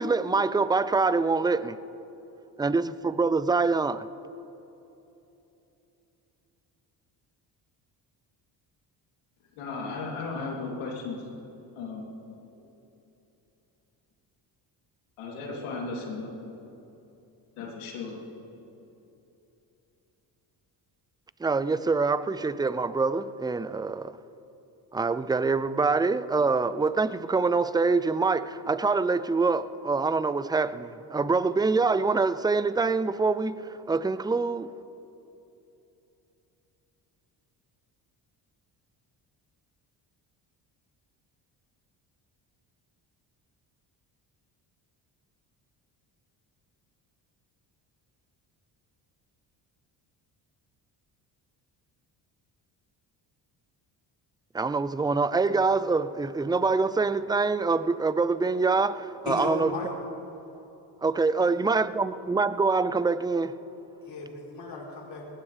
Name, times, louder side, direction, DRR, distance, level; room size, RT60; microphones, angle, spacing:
voice 1, 0.0-1.8 2.6-4.1 21.4-24.2 24.9-34.7 54.5-59.7 61.0-63.5, right 4 dB, 10° right, 0.4 m, -25 dB
voice 2, 9.6-11.2 11.8-12.1 12.6-12.7 15.2-16.3 17.6-18.1, left 3 dB, 90° left, 3.5 m, -35 dB
voice 3, 59.3-59.9 61.4-61.5 64.0-65.3, left 3 dB, 60° left, 4.4 m, -35 dB
20.0 x 18.0 x 3.5 m
supercardioid pair, 70°, 48 cm